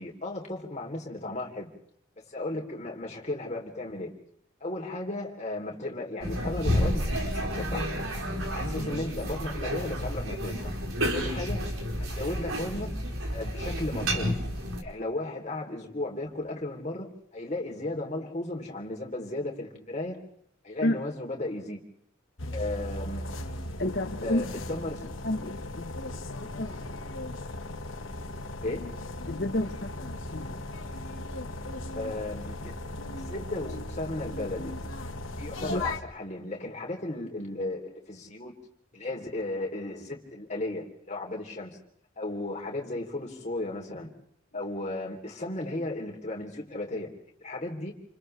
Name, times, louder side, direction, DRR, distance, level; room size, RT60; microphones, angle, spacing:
voice 1, 0.0-1.7 2.2-4.1 4.6-7.9 8.5-10.7 11.1-11.7 12.0-12.9 13.3-14.4 14.8-17.1 17.3-20.2 20.6-21.8 22.5-23.2 24.2-25.1 28.6-28.9 31.9-32.7 33.1-34.7 35.4-38.5 38.9-41.8 42.2-44.1 44.5-47.1 47.4-47.9, left 2 dB, 35° left, 0 dB, 3.5 m, -35 dB
sound 1, 6.2-14.8, equal, 90° right, 5.1 m, -30 dB
sound 2, 22.4-36.0, left 1 dB, 70° left, 1.7 m, -37 dB
voice 2, 23.8-24.4 25.2-26.8 27.2-27.3 29.3-30.6 35.6-35.8, left 1 dB, 50° left, 4 dB, 1.2 m, -31 dB
29.0 x 29.0 x 3.4 m, 0.68 s
head